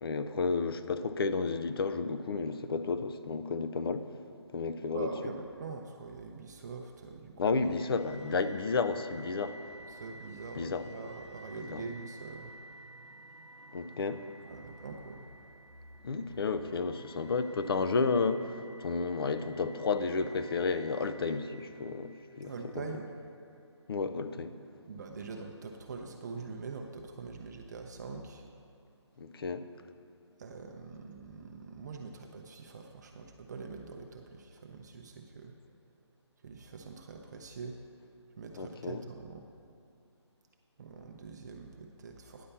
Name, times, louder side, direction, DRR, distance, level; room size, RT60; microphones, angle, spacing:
voice 1, 0.0-4.0 4.5-5.1 7.4-9.5 10.6-10.8 11.7-11.8 13.7-14.2 16.0-22.1 22.4-22.5 23.9-24.5 29.2-29.6 38.6-39.0, left 4 dB, 55° left, 10 dB, 0.5 m, -32 dB
voice 2, 4.9-7.6 7.9-8.0 9.9-12.5 14.5-15.2 22.4-23.1 24.9-28.4 30.4-35.5 36.4-37.8 38.4-39.4 40.8-42.5, right 4 dB, 40° right, 3 dB, 0.5 m, -44 dB
sound 1, 7.6-22.7, right 1 dB, 70° right, 0.7 m, -52 dB
10.0 x 4.2 x 6.9 m, 2.5 s
figure-of-eight pair, 150°, 15 cm